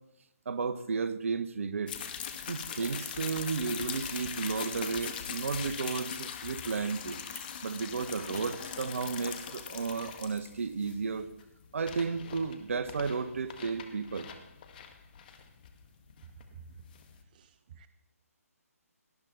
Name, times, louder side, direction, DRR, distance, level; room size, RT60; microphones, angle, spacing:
voice 1, 0.4-2.0 2.5-7.2 7.6-11.3 11.7-14.3, right 5 dB, 55° right, 1.3 m, -33 dB
sound 1, 1.9-17.2, left 8 dB, 35° left, 1.6 m, -41 dB
sound 2, 2.7-3.2 3.8-4.2 4.7-5.2 5.9-6.2 7.1-7.5 8.1-8.5, left 2 dB, 90° left, 5.4 m, -49 dB
voice 2, 16.5-16.8 17.3-17.9, right 6 dB, 35° right, 0.6 m, -51 dB
18.0 x 12.5 x 4.1 m
figure-of-eight pair, 145°, 8 cm